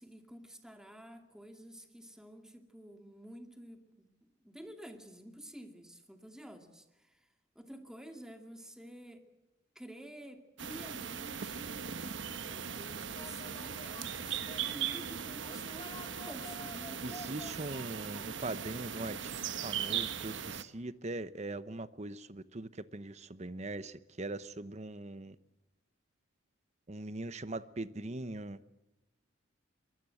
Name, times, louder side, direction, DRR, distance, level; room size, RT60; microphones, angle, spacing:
voice 1, 0.0-7.3 7.6-9.2 9.8-15.9 16.3-17.3 19.0-19.3, equal, 5° right, 2.3 m, -50 dB
sound 1, 10.6-20.6, right 8 dB, 65° right, 1.1 m, -39 dB
sound 2, 13.2-20.6, left 2 dB, 20° left, 1.3 m, -53 dB
voice 2, 17.0-19.4 19.6-25.4 26.9-28.6, right 2 dB, 35° right, 0.9 m, -41 dB
23.5 x 21.5 x 7.9 m
head